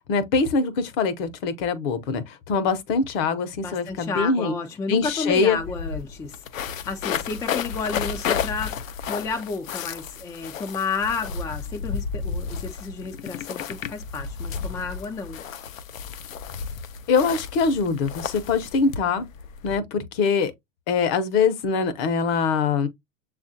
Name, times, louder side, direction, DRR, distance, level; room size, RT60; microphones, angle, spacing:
voice 1, 0.1-4.5 4.9-5.6 17.1-19.3 19.6-20.5 20.9-22.9, left 5 dB, 45° left, 0.9 m, -23 dB
voice 2, 3.6-6.4 6.8-15.4, left 4 dB, 10° left, 0.4 m, -31 dB
sound 1, 5.0-5.1 5.3-19.8, left 7 dB, 85° left, 0.6 m, -32 dB
6.9 x 2.4 x 2.7 m
hypercardioid pair, 105°, 39 cm